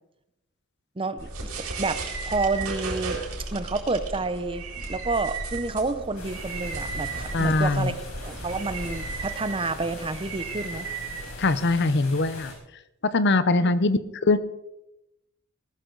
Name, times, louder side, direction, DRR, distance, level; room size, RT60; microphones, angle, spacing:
voice 1, 1.0-3.2 3.5-8.0 8.2-10.9 13.6-13.7, right 3 dB, 25° right, 12 dB, 0.7 m, -29 dB
sound 1, 1.2-11.8, right 3 dB, 90° right, 4.2 m, -35 dB
sound 2, 6.2-12.5, left 2 dB, 90° left, 4.8 m, -41 dB
voice 2, 7.3-7.9 11.4-12.5 13.0-14.4, left 2 dB, 55° left, 14 dB, 0.8 m, -22 dB
18.5 x 13.0 x 4.0 m, 0.86 s
head